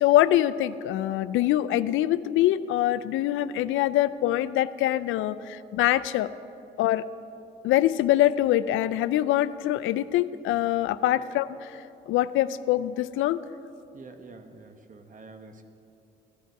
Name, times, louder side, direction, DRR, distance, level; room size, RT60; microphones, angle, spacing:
voice 1, 0.0-6.3 6.8-7.0 7.6-11.5 12.1-13.4, left 13 dB, 85° left, 14 dB, 0.4 m, -24 dB
voice 2, 13.9-15.6, right 3 dB, 40° right, 7 dB, 1.2 m, -47 dB
16.0 x 11.0 x 4.7 m, 2.7 s
cardioid pair, 90°, 20 cm